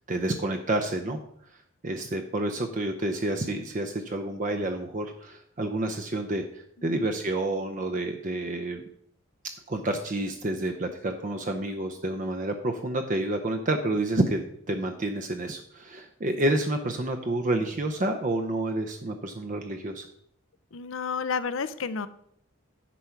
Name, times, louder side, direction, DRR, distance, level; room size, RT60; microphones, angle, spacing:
voice 1, 0.1-1.2 1.8-8.8 9.7-14.4 14.7-20.1, right 2 dB, 40° right, 5 dB, 0.6 m, -29 dB
voice 2, 20.7-22.1, left 5 dB, 70° left, 14 dB, 0.6 m, -31 dB
10.0 x 4.6 x 5.7 m, 0.68 s
head